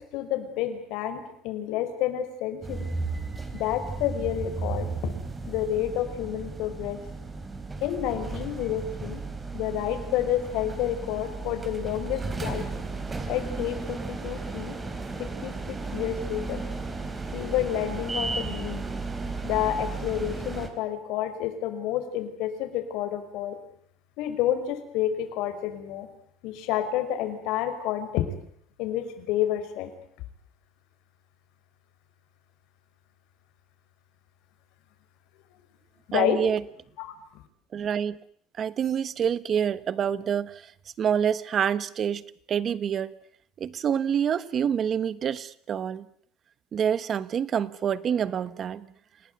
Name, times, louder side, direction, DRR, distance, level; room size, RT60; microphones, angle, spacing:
voice 1, 0.0-2.9 3.5-5.1 5.5-7.0 7.8-9.2 9.5-12.7 13.3-14.8 15.2-16.6 17.3-18.8 19.4-23.6 24.2-26.1 26.4-28.3 28.8-29.9 36.1-36.5 37.0-37.1, left 11 dB, 65° left, 8 dB, 5.3 m, -29 dB
sound 1, 2.6-20.7, right 3 dB, 15° right, 3.4 m, -34 dB
voice 2, 36.1-36.6 37.7-38.2 38.6-40.7 41.0-42.2 42.5-43.1 43.6-46.1 46.7-48.9, right 8 dB, 30° right, 16 dB, 1.2 m, -27 dB
29.0 x 18.5 x 9.4 m, 0.65 s
cardioid pair, 160°, 0 cm